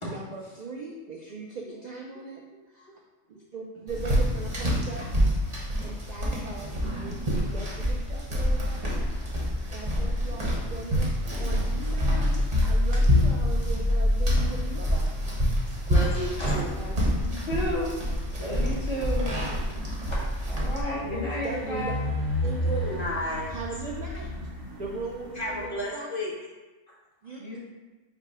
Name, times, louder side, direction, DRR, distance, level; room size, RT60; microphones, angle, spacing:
voice 1, 0.0-2.4 2.7-2.9 3.3-5.0 5.8-7.2 7.4-8.9 9.7-15.1 21.0-21.9 22.4-22.8 23.5-24.3 24.8-26.1 27.2-27.6, right 3 dB, 60° right, -1 dB, 0.4 m, -39 dB
sound 1, 3.9-20.8, equal, 35° right, 1.0 m, -26 dB
sound 2, 8.5-25.7, left 1 dB, 90° right, 1.2 m, -37 dB
voice 2, 15.9-16.7 19.7-19.8 22.6-23.5 25.4-26.3, left 1 dB, 50° left, -5 dB, 1.0 m, -32 dB
voice 3, 16.8-18.0 18.4-19.3 20.1-21.9 27.4-27.6, left 1 dB, 25° left, -8 dB, 1.4 m, -33 dB
5.0 x 2.2 x 4.8 m, 1.2 s
omnidirectional pair, 1.3 m